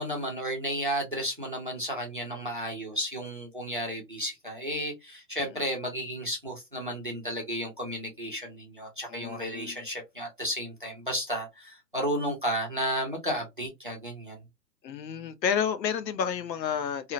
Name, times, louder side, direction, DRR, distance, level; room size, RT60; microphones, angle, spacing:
voice 1, 0.0-14.4, equal, 35° right, 0.4 m, -33 dB
voice 2, 9.1-9.8 14.8-17.1, left 7 dB, 85° left, 0.7 m, -31 dB
2.7 x 2.1 x 2.4 m
hypercardioid pair, 165°, 49 cm